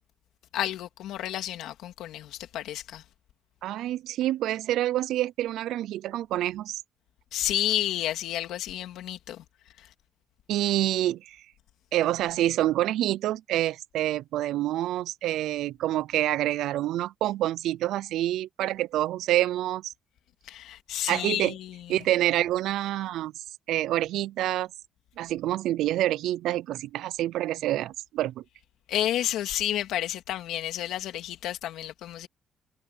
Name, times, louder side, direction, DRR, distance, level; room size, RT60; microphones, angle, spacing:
voice 1, 0.5-3.0 7.3-9.4 9.8-9.9 20.4-22.1 28.9-32.3, left 12 dB, 90° left, 2.7 m, -31 dB
voice 2, 3.6-6.8 10.5-11.4 11.9-19.9 21.1-21.5 21.9-23.3 23.7-24.7 25.2-28.4, right 14 dB, 90° right, 0.5 m, -27 dB
cardioid pair, 150°, 0 cm